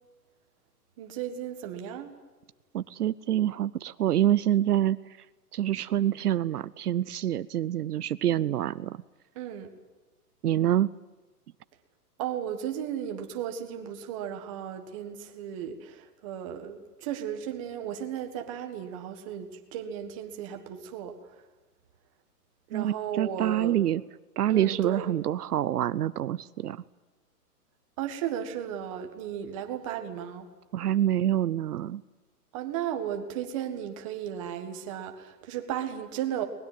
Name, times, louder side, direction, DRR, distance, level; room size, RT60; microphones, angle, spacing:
voice 1, 1.0-2.1 9.3-9.7 12.2-21.2 22.7-23.8 24.5-25.1 28.0-30.5 32.5-36.4, right 9 dB, 20° right, 5 dB, 1.6 m, -35 dB
voice 2, 2.7-5.3 5.5-9.0 10.4-10.9 22.7-24.0 24.4-26.8 30.7-32.0, right 11 dB, 70° right, 16 dB, 0.7 m, -26 dB
22.5 x 20.5 x 9.3 m, 1.2 s
hypercardioid pair, 175°, 47 cm